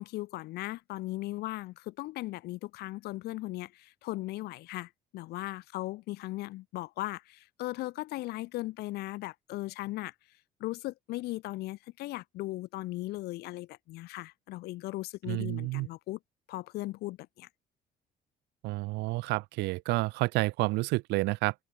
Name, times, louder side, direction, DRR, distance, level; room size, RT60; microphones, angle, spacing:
voice 1, 0.0-10.1 10.6-16.2 16.5-17.5, left 18 dB, 70° left, 0.4 m, -38 dB
voice 2, 15.3-15.9 18.6-21.5, right 22 dB, 90° right, 0.6 m, -29 dB
open air
cardioid pair, 110°, 17 cm